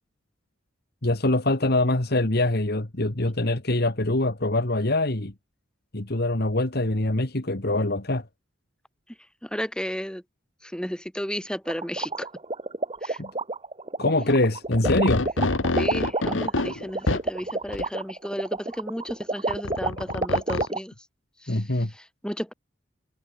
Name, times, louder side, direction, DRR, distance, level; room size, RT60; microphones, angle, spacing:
voice 1, 1.0-5.3 5.9-8.3 13.2-13.3 14.0-15.3 21.5-21.9, left 2 dB, 55° left, 2.1 m, -24 dB
voice 2, 9.4-10.2 10.6-12.3 13.0-13.2 15.7-20.9 21.4-21.6 22.2-22.5, equal, 5° left, 5.7 m, -33 dB
sound 1, 11.7-20.8, right 2 dB, 30° right, 2.5 m, -28 dB
sound 2, 14.3-14.4 14.7-17.3 17.7-17.8 19.5-20.7, left 2 dB, 85° left, 1.3 m, -27 dB
head